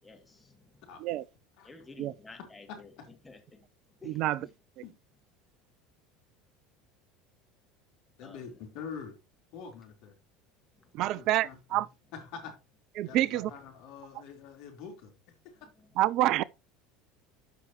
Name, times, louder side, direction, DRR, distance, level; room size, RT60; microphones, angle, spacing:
voice 1, 0.0-0.9 1.6-2.9 3.2-3.6 4.0-4.5 8.2-8.6 10.7-11.0 13.0-13.2 15.6-16.0, left 3 dB, 15° left, 2.6 m, -53 dB
voice 2, 0.9-1.2 1.6-1.7 2.4-3.1 4.8-4.9 8.2-9.2 9.5-10.1 11.0-11.8 12.1-12.5 13.1-15.1, left 6 dB, 55° left, 3.9 m, -45 dB
voice 3, 4.0-4.5 10.9-11.9 13.0-13.5 16.0-16.4, right 15 dB, 50° right, 0.4 m, -27 dB
12.5 x 5.9 x 3.0 m
figure-of-eight pair, 70°, 0 cm